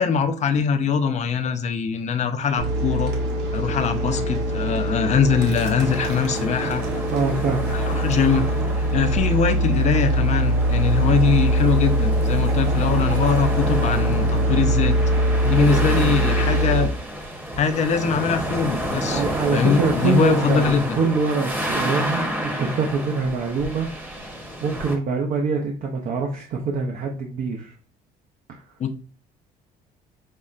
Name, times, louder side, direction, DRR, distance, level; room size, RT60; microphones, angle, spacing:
voice 1, 0.0-3.1 3.5-6.8 7.7-8.4 8.9-15.0 15.4-16.9 17.6-19.2 19.5-20.8 28.8-29.0, left 6 dB, 45° left, 9 dB, 0.5 m, -22 dB
sound 1, 2.6-16.9, right 1 dB, 85° right, 0.9 m, -22 dB
sound 2, 5.8-25.0, equal, 10° right, 0.9 m, -30 dB
voice 2, 7.1-8.1 15.6-16.2 19.1-24.2 24.6-27.7 28.5-28.6, right 4 dB, 55° right, 2 dB, 0.5 m, -25 dB
5.3 x 2.1 x 2.4 m, 0.39 s
cardioid pair, 110°, 17 cm